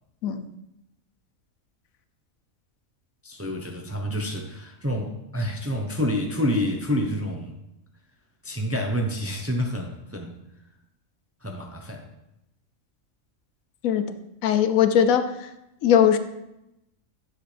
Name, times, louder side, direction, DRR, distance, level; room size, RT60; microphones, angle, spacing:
voice 1, 3.2-7.5 8.4-10.3 11.4-12.0, equal, 15° right, 2 dB, 0.6 m, -28 dB
voice 2, 14.4-15.3 15.8-16.2, left 9 dB, 80° left, 11 dB, 1.1 m, -19 dB
9.7 x 7.5 x 3.3 m, 0.88 s
omnidirectional pair, 1.4 m